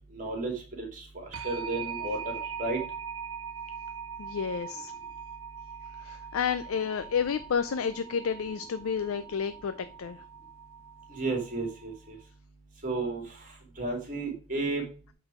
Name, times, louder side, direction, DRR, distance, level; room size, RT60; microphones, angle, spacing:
voice 1, 0.1-2.8 11.1-12.2 12.8-13.2 13.8-14.8, right 2 dB, 35° right, 2 dB, 2.4 m, -33 dB
sound 1, 1.3-12.0, right 7 dB, 70° right, 0.6 m, -41 dB
voice 2, 4.2-4.9 6.0-10.2, left 7 dB, 70° left, 11 dB, 0.4 m, -31 dB
8.0 x 3.9 x 4.7 m, 0.36 s
head